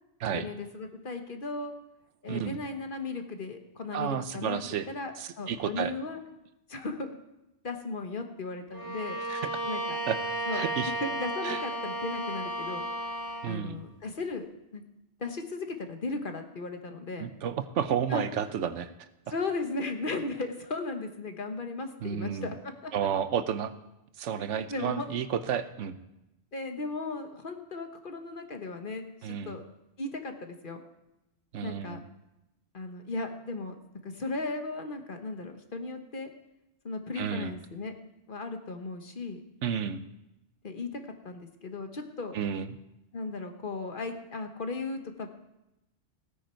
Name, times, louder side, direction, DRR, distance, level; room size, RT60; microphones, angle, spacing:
voice 1, 0.3-1.7 2.2-6.2 6.7-7.2 7.6-9.2 9.6-10.0 10.5-10.6 11.0-12.8 13.5-14.5 14.7-14.8 15.2-17.3 18.1-18.2 19.3-22.9 24.3-25.1 26.5-29.6 30.0-30.8 31.6-32.0 32.7-33.8 34.0-36.3 36.8-37.9 38.3-39.4 40.6-42.4 43.1-45.3, left 3 dB, 50° left, 5 dB, 1.3 m, -36 dB
voice 2, 2.3-2.6 3.9-4.9 5.2-5.9 9.3-9.5 10.1-10.2 10.5-10.9 11.4-11.6 13.4-13.8 17.2-18.9 22.0-22.5 22.9-23.7 24.2-26.0 29.2-29.6 31.5-32.0 37.2-37.5 39.6-40.0 42.3-42.7, right 8 dB, 90° right, 12 dB, 1.1 m, -31 dB
Bowed string instrument, 8.7-13.6, right 1 dB, 15° right, 4.1 m, -33 dB
16.0 x 9.7 x 4.5 m, 0.91 s
omnidirectional pair, 1.2 m